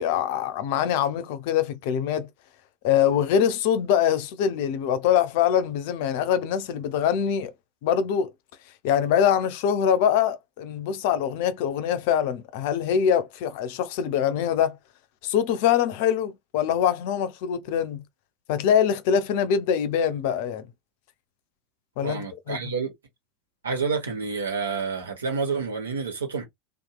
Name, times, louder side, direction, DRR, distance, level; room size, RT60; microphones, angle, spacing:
voice 1, 0.0-2.3 2.8-7.5 7.8-8.3 8.8-14.8 15.2-18.0 18.5-20.7 22.0-22.6, left 9 dB, 55° left, 0.5 m, -24 dB
voice 2, 22.0-22.9 23.6-26.4, right 5 dB, 75° right, 1.1 m, -29 dB
2.7 x 2.4 x 2.3 m
figure-of-eight pair, 80°, 0 cm